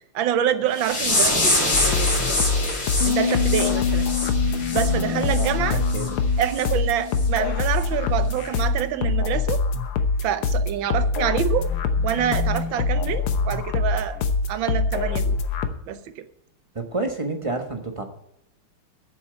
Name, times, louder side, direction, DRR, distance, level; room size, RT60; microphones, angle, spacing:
voice 1, 0.0-2.1 3.1-4.0 4.7-5.8 6.4-9.6 10.2-11.7 12.0-14.2 14.5-15.4 15.9-16.3, right 10 dB, 70° right, 12 dB, 1.5 m, -26 dB
sound 1, 0.7-5.5 5.8-6.1 6.5-6.7 7.1-7.3 7.8-7.9, left 2 dB, 40° left, 4.3 m, -25 dB
sound 2, 1.7-15.7, left 4 dB, 75° left, 1.8 m, -24 dB
sound 3, 3.0-9.3, left 10 dB, 60° left, 0.6 m, -30 dB
voice 2, 4.9-6.2 16.7-18.0, right 2 dB, 20° right, 4 dB, 1.0 m, -30 dB
8.7 x 7.4 x 7.6 m, 0.80 s
omnidirectional pair, 2.4 m